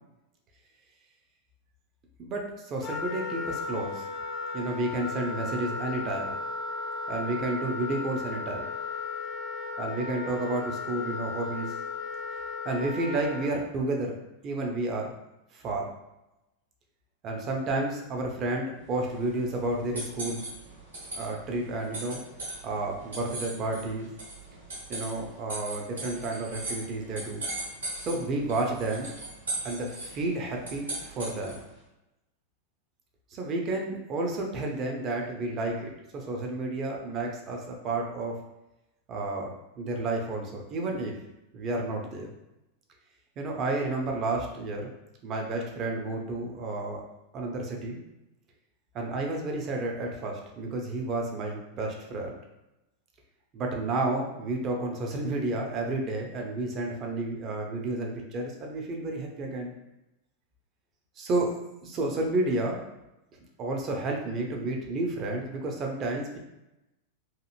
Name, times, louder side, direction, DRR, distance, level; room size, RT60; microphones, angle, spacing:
voice 1, 2.2-4.1 4.5-6.4 7.1-8.7 9.8-11.7 12.6-14.2 14.4-15.1 15.5-15.9 17.2-20.4 21.1-22.2 22.6-24.1 24.9-27.4 28.0-29.1 29.6-31.6 33.3-38.4 39.1-41.2 41.5-42.3 43.4-44.9 45.2-47.0 47.3-48.0 48.9-52.4 53.5-59.7 61.2-61.5 61.8-62.8 63.6-66.4, right 2 dB, 30° right, 1 dB, 0.6 m, -31 dB
Wind instrument woodwind instrument, 2.8-13.5, left 4 dB, 35° left, 0.4 m, -35 dB
sound 1, 18.9-31.7, right 2 dB, 75° right, 1.4 m, -39 dB
2.8 x 2.6 x 2.4 m, 0.92 s
figure-of-eight pair, 90°, 0 cm